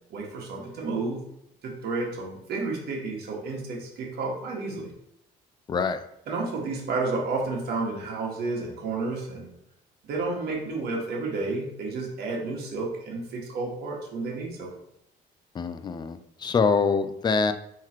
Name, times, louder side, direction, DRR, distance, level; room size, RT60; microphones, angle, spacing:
voice 1, 0.1-1.2 1.6-4.9 6.3-9.5 10.0-14.7, right 3 dB, 70° right, -2 dB, 1.5 m, -31 dB
voice 2, 5.7-6.0 15.5-17.5, left 5 dB, 25° left, 10 dB, 0.4 m, -25 dB
3.9 x 3.1 x 4.4 m, 0.78 s
cardioid pair, 110°, 17 cm